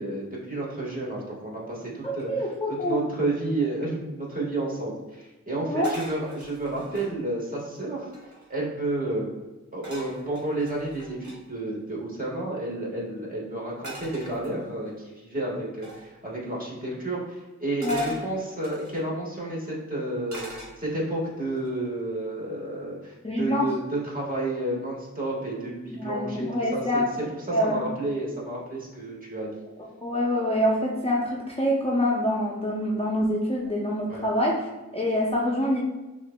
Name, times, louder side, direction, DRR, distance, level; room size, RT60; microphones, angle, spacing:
voice 1, 0.0-2.5 2.8-8.1 8.5-9.3 9.7-27.0 27.5-29.5 34.1-34.2, right 2 dB, 30° right, -4 dB, 1.5 m, -31 dB
voice 2, 2.3-3.1 5.7-5.9 17.8-18.1 23.2-23.7 25.9-27.1 27.5-27.9 30.0-35.8, left 1 dB, 20° left, -3 dB, 0.6 m, -26 dB
sound 1, 5.8-7.1 7.7-7.8 8.0-8.6 9.8-11.4 13.8-14.9 15.8-16.1 17.8-19.0 20.3-21.1 21.6-21.9, right 1 dB, 70° right, 1.2 m, -43 dB
6.2 x 2.5 x 2.2 m, 1.1 s
wide cardioid pair, 50°, 30 cm